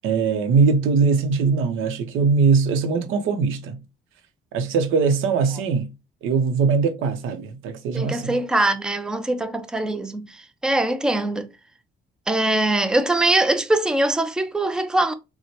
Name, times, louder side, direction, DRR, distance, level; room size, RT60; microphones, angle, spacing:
voice 1, 0.0-3.8 4.5-5.9 6.2-8.4, right 5 dB, 90° right, 0.7 m, -21 dB
voice 2, 7.9-11.5 12.3-15.1, right 2 dB, 5° right, 0.4 m, -22 dB
4.2 x 2.1 x 2.8 m
cardioid pair, 90°, 20 cm